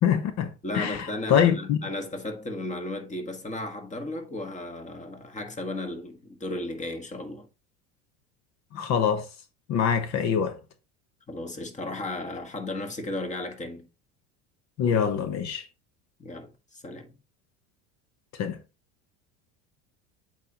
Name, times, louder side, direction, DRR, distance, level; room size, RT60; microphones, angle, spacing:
voice 1, 0.0-1.8 8.7-9.3 9.7-10.6 14.8-15.6 18.4-18.6, left 8 dB, 55° left, 0.9 m, -24 dB
voice 2, 0.6-7.5 11.3-13.9 16.2-17.1, left 2 dB, 20° left, 1.5 m, -35 dB
8.0 x 4.3 x 2.9 m
supercardioid pair, 95°, 34 cm